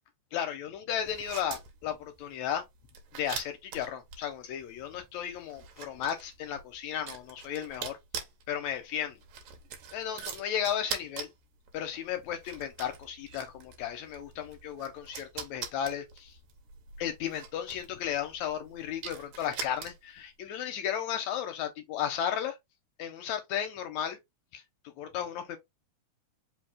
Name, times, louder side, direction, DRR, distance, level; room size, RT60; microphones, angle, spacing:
voice 1, 0.3-2.6 3.1-8.0 8.5-9.2 9.9-11.3 11.7-16.3 17.0-22.6 23.0-24.2 24.5-24.6 25.0-25.6, left 9 dB, 80° left, 1.7 m, -34 dB
sound 1, 1.0-20.2, right 7 dB, 75° right, 2.3 m, -44 dB
5.2 x 2.5 x 3.5 m
omnidirectional pair, 3.9 m